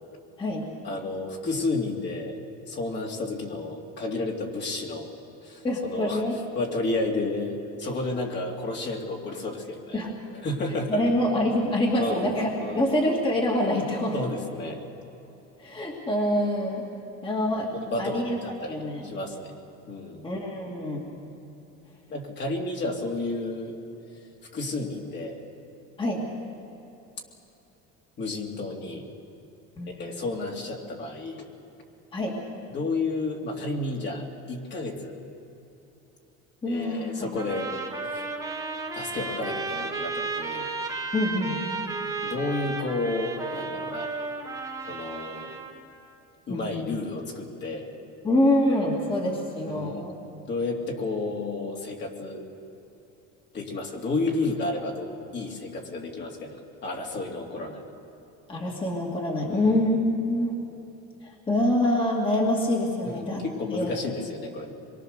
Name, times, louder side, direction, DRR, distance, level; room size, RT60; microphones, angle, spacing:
voice 1, 0.8-2.4 2.7-5.1 5.4-10.0 10.3-11.1 12.0-12.9 14.1-14.8 17.7-19.5 19.9-20.3 22.1-23.8 24.5-25.4 28.2-29.1 29.9-31.5 32.7-35.2 36.7-37.7 38.1-38.2 38.9-40.7 42.2-44.1 44.9-45.5 46.5-47.9 49.6-50.1 50.5-52.4 53.5-57.8 59.5-59.8 63.0-64.7, left 2 dB, 35° left, 0 dB, 2.7 m, -31 dB
voice 2, 5.6-6.4 9.9-10.1 10.9-14.1 15.6-16.8 17.2-17.7 18.0-18.4 18.7-19.1 20.2-21.1 26.0-26.2 29.8-29.9 32.1-32.3 36.6-37.3 41.1-41.6 46.5-47.0 48.2-50.1 58.5-60.5 61.2-63.4 63.7-64.0, left 1 dB, 15° left, -1 dB, 2.4 m, -25 dB
sound 1, 37.3-45.7, right 3 dB, 10° right, 1.9 m, -33 dB
25.5 x 23.0 x 6.6 m, 3.0 s
cardioid pair, 165°, 30 cm